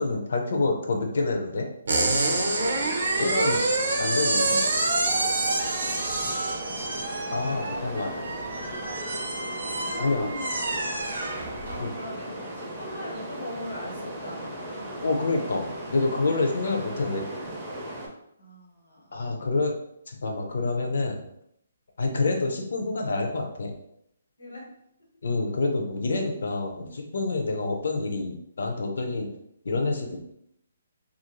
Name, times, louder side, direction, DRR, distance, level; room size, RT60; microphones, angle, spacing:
voice 1, 0.0-1.7 3.2-3.6 4.0-4.6 7.3-8.1 10.0-10.3 11.8-11.9 15.0-17.2 19.1-19.8 20.1-21.2 22.0-23.7 25.2-29.3 29.6-30.3, left 3 dB, 60° left, 2 dB, 0.5 m, -27 dB
sound 1, 1.9-11.8, right 2 dB, 65° right, 0.5 m, -27 dB
sound 2, 2.2-18.1, right 1 dB, 5° right, 0.4 m, -37 dB
voice 2, 7.5-8.3 9.6-10.8 11.7-14.6 18.4-19.2 24.4-24.7, left 1 dB, 85° left, -3 dB, 1.2 m, -40 dB
2.5 x 2.3 x 2.9 m, 0.74 s
hypercardioid pair, 180°, 0 cm